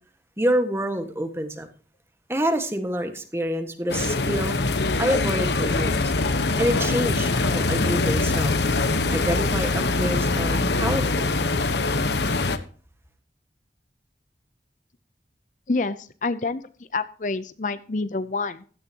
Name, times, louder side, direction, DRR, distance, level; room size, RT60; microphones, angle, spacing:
voice 1, 0.4-1.7 2.3-4.6 5.0-6.1 6.6-8.6 9.1-11.3, equal, 15° right, 1.6 m, -27 dB
sound 1, 3.9-12.6, left 3 dB, 75° left, 1.2 m, -23 dB
voice 2, 15.7-16.6 16.9-18.6, left 3 dB, 45° left, 0.6 m, -27 dB
16.0 x 12.5 x 2.9 m
head